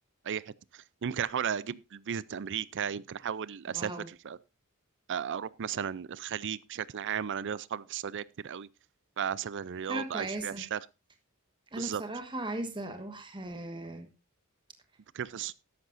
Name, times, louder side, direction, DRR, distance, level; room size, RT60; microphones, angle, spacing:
voice 1, 0.2-4.4 5.1-8.7 9.2-10.9 11.7-12.0 15.1-15.5, right 8 dB, 55° right, 0.5 m, -35 dB
voice 2, 3.7-4.1 9.8-10.6 11.7-14.1, right 2 dB, 20° right, 1.4 m, -37 dB
13.5 x 11.0 x 2.6 m
head